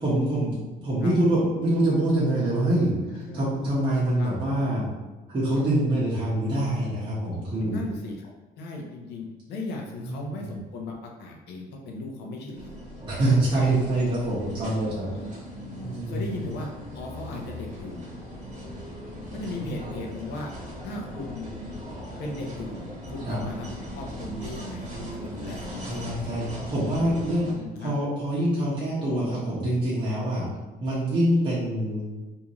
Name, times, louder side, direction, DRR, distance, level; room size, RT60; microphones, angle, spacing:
voice 1, 0.0-4.8 5.3-7.8 10.0-10.3 13.1-15.1 15.8-16.4 23.3-23.4 25.8-27.5 27.8-30.5 30.8-32.0, right 1 dB, 30° right, -10 dB, 1.2 m, -25 dB
voice 2, 7.6-8.3 8.6-12.8 15.1-18.0 19.3-20.5 20.8-21.6 22.2-26.3 27.5-27.9, left 2 dB, 80° left, 0 dB, 0.7 m, -37 dB
sound 1, 12.5-27.5, equal, 50° right, 1.2 m, -39 dB
3.6 x 2.7 x 3.0 m, 1.2 s
cardioid pair, 110°, 17 cm